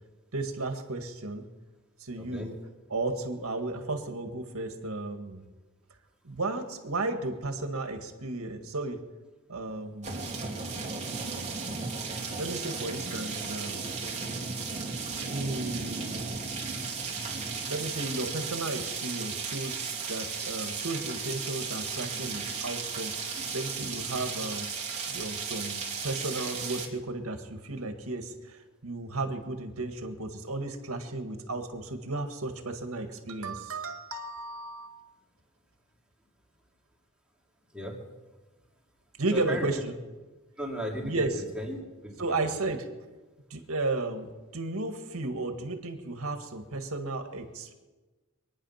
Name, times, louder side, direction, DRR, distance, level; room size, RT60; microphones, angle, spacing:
voice 1, 0.3-1.5 2.0-2.6 2.9-5.4 6.2-9.0 9.5-10.3 12.4-13.9 15.3-16.4 17.6-24.7 25.1-34.9 39.2-39.9 41.0-41.3 42.2-42.9 43.5-47.7, right 2 dB, 75° right, 6 dB, 1.9 m, -34 dB
voice 2, 2.2-2.5 37.7-38.1 39.3-39.7 40.6-42.5, equal, 5° right, -2 dB, 3.0 m, -36 dB
sound 1, 10.0-26.9, right 5 dB, 30° right, 2.7 m, -35 dB
24.5 x 10.0 x 5.8 m, 1.2 s
head